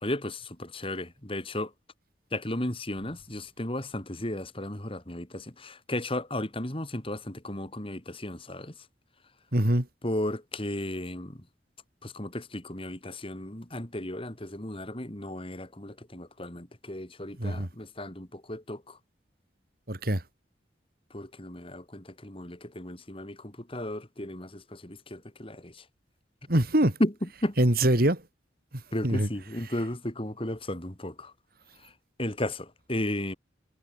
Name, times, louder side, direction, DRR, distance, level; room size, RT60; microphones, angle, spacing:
voice 1, 0.0-1.7 2.3-8.9 10.0-11.5 12.0-19.0 21.1-25.8 27.0-27.6 28.9-31.3 31.8-31.9 32.2-33.4, left 1 dB, 30° left, 2.8 m, -34 dB
voice 2, 9.5-9.9 17.4-17.7 19.9-20.2 26.5-26.9 27.6-28.2 29.0-29.3, right 1 dB, 50° right, 3.0 m, -23 dB
head